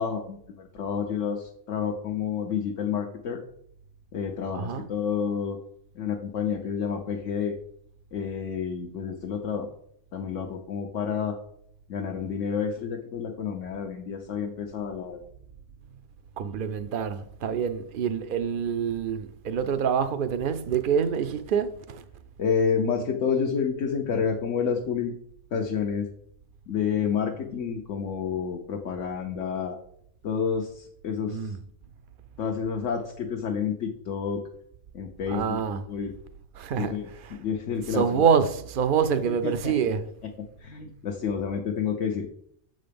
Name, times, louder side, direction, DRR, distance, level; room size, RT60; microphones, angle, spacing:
voice 1, 0.0-3.4 4.1-5.6 5.9-7.6 8.1-9.7 10.1-11.4 11.9-15.2 22.4-25.1 25.5-26.1 26.7-29.8 30.2-31.6 32.4-34.4 34.9-36.1 36.8-38.2 39.2-39.7 40.6-42.3, left 6 dB, 85° left, 1.2 m, -29 dB
voice 2, 4.5-4.9 16.4-22.0 31.3-31.6 35.3-35.8 36.6-37.0 37.2-37.4 37.9-40.1, right 7 dB, 60° right, 0.6 m, -26 dB
7.5 x 3.9 x 5.1 m
omnidirectional pair, 1.2 m